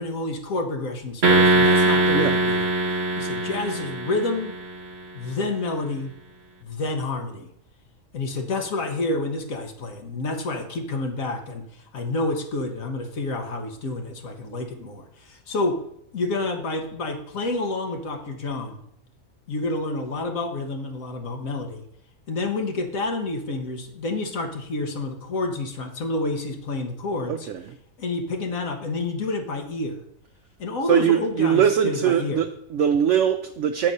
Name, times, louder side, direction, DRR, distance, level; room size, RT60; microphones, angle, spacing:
voice 1, 0.0-4.5 5.1-6.1 6.6-7.5 8.1-15.8 16.1-18.8 19.5-21.8 22.3-27.5 28.0-30.0 30.6-32.4, left 2 dB, 65° left, 4 dB, 1.5 m, -29 dB
sound 1, 1.2-4.7, right 2 dB, 45° right, 1.1 m, -21 dB
voice 2, 27.3-27.6 30.9-33.9, right 9 dB, 65° right, 6 dB, 0.8 m, -21 dB
8.6 x 5.2 x 5.4 m, 0.73 s
omnidirectional pair, 1.6 m